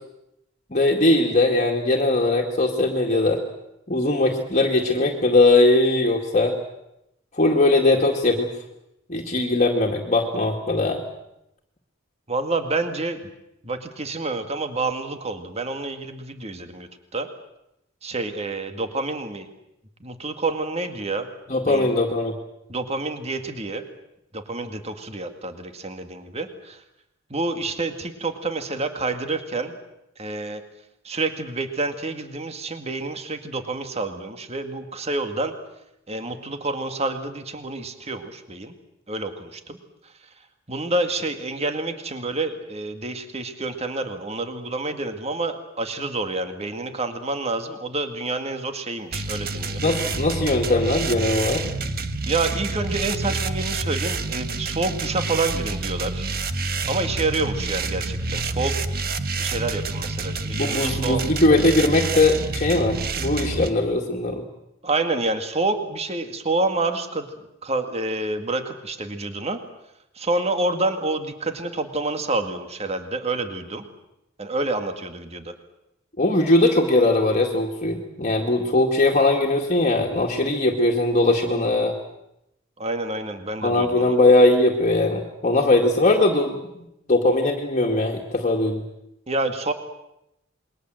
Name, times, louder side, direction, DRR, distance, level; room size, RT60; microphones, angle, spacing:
voice 1, 0.7-3.4 3.9-6.6 7.4-8.5 9.1-11.0 21.5-22.3 49.8-51.7 60.6-64.4 76.2-81.9 83.6-88.8, left 2 dB, 35° left, 1 dB, 2.2 m, -20 dB
voice 2, 12.3-13.3 13.6-17.3 18.0-19.5 20.0-21.3 21.7-21.9 22.7-23.8 24.3-26.8 27.3-29.8 30.2-30.6 31.0-35.5 36.1-38.7 39.1-39.8 40.7-49.8 52.3-56.3 56.9-58.8 59.4-61.2 64.8-67.3 67.6-69.6 70.2-73.9 74.4-75.5 82.8-84.2 89.3-89.7, right 2 dB, 30° right, 7 dB, 2.0 m, -28 dB
sound 1, 49.1-63.7, right 3 dB, 50° right, 1.5 m, -28 dB
28.0 x 22.0 x 7.8 m, 0.85 s
head